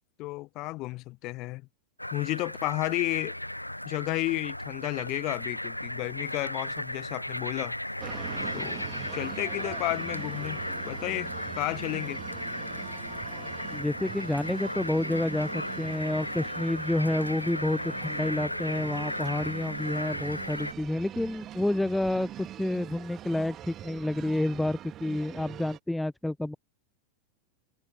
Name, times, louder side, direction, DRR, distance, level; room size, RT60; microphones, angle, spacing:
voice 1, 0.2-1.6 2.1-3.3 3.8-7.8 8.5-8.8 9.1-10.6 10.9-11.3 11.6-12.2, left 20 dB, 40° left, 1.4 m, -32 dB
sound 1, 2.0-20.7, left 1 dB, 85° left, 0.5 m, -36 dB
sound 2, 8.0-25.8, right 12 dB, 30° right, 2.8 m, -43 dB
voice 2, 13.7-26.6, left 1 dB, 5° left, 0.4 m, -29 dB
figure-of-eight pair, 90°, 0 cm